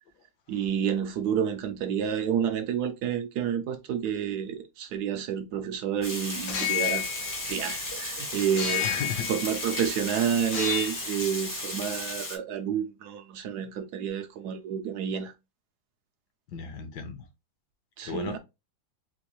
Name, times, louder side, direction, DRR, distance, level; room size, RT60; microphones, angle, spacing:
voice 1, 0.5-7.1 7.5-8.9 9.3-15.3 18.0-18.4, right 8 dB, 70° right, 1.0 m, -29 dB
Water, 6.0-12.4, left 1 dB, 20° left, 0.5 m, -35 dB
sound 1, 6.4-8.0 8.6-9.9 10.4-11.2, left 9 dB, 90° left, 1.6 m, -32 dB
voice 2, 8.8-9.3 16.5-17.3 18.1-18.4, left 6 dB, 70° left, 1.3 m, -34 dB
3.9 x 2.5 x 2.9 m
omnidirectional pair, 2.0 m